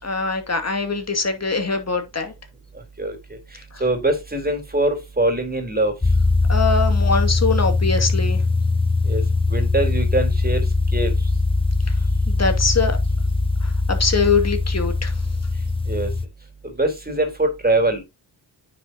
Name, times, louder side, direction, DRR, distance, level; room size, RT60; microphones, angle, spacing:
voice 1, 0.0-2.3 3.7-3.8 6.5-8.4 12.3-13.0 13.6-15.1, left 4 dB, 35° left, 2.4 m, -23 dB
voice 2, 3.0-5.9 9.1-9.2 9.5-11.1 15.9-16.1 16.6-18.0, right 2 dB, 20° right, 3.7 m, -23 dB
sound 1, 6.0-16.3, left 3 dB, 10° left, 0.7 m, -21 dB
9.6 x 6.3 x 2.8 m
cardioid pair, 80°, 45 cm